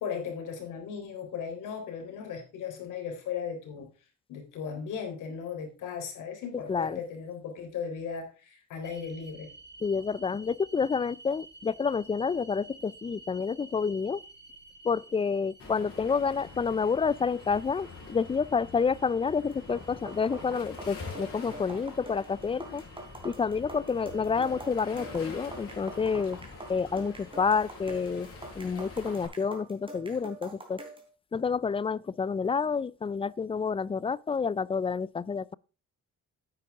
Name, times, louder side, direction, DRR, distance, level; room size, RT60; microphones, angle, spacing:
voice 1, 0.0-3.9 4.3-9.5, left 7 dB, 85° left, 3.8 m, -37 dB
voice 2, 6.7-7.0 9.8-14.2 14.8-22.8 23.2-26.4 26.7-28.3 28.5-30.8 31.3-35.5, left 5 dB, 20° left, 0.3 m, -29 dB
sound 1, 8.8-27.9, right 2 dB, 35° right, 4.6 m, -54 dB
Waves surf, 15.6-29.3, left 3 dB, 50° left, 5.8 m, -45 dB
sound 2, 19.5-31.1, right 2 dB, 15° right, 3.4 m, -45 dB
9.6 x 9.1 x 3.6 m
cardioid pair, 90°, 30 cm